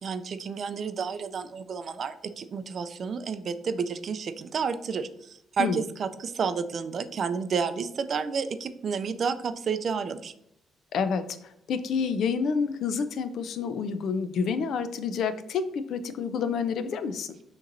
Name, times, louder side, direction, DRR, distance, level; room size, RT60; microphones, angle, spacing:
voice 1, 0.0-10.3, right 6 dB, 55° right, 11 dB, 0.4 m, -31 dB
voice 2, 10.9-17.4, left 5 dB, 70° left, 11 dB, 0.4 m, -29 dB
6.4 x 3.0 x 2.6 m, 0.75 s
cardioid pair, 90°, 0 cm